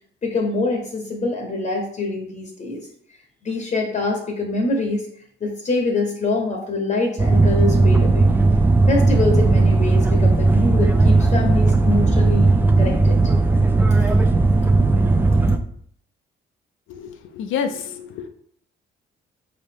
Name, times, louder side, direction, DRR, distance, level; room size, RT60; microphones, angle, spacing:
voice 1, 0.2-2.9 3.4-5.1 5.4-8.3 8.9-12.5 12.8-13.3, left 3 dB, 40° left, 1 dB, 0.8 m, -25 dB
sound 1, 7.2-15.6, right 3 dB, 10° right, 0.3 m, -16 dB
voice 2, 16.9-18.3, left 7 dB, 80° left, 6 dB, 0.5 m, -29 dB
4.4 x 2.8 x 3.4 m, 0.63 s
cardioid pair, 90°, 20 cm